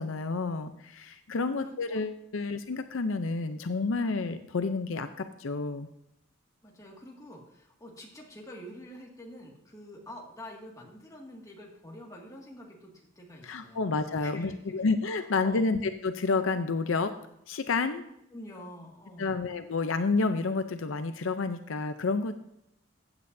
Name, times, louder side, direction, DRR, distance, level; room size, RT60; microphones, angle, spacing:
voice 1, 0.0-5.9 13.4-17.1 17.5-18.0 19.2-22.4, left 3 dB, 75° left, 9 dB, 0.6 m, -30 dB
voice 2, 1.4-2.1 6.6-14.8 15.2-15.7 18.3-19.5, equal, 15° left, -1 dB, 2.0 m, -47 dB
15.0 x 8.7 x 2.7 m, 0.79 s
head